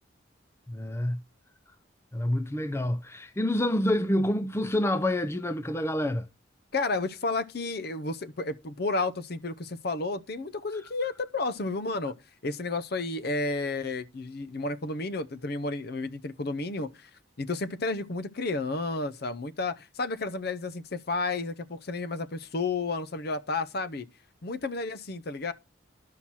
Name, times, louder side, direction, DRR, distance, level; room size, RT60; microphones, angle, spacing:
voice 1, 0.7-1.2 2.1-6.3, left 1 dB, 15° left, 0.4 m, -27 dB
voice 2, 6.7-12.1 12.4-17.1 17.4-24.1 24.4-25.5, left 3 dB, 50° left, 0.6 m, -31 dB
11.5 x 5.7 x 6.1 m
head